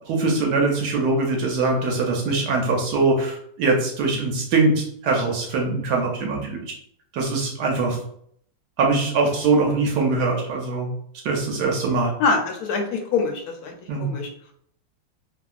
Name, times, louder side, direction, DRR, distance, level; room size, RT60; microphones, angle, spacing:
voice 1, 0.1-6.6 7.1-8.0 8.8-10.9 11.2-12.1 13.9-14.1, right 3 dB, 75° right, 0 dB, 1.1 m, -22 dB
voice 2, 12.2-13.7 14.0-14.3, left 4 dB, 70° left, 3 dB, 1.0 m, -24 dB
2.8 x 2.6 x 2.3 m, 0.67 s
omnidirectional pair, 1.9 m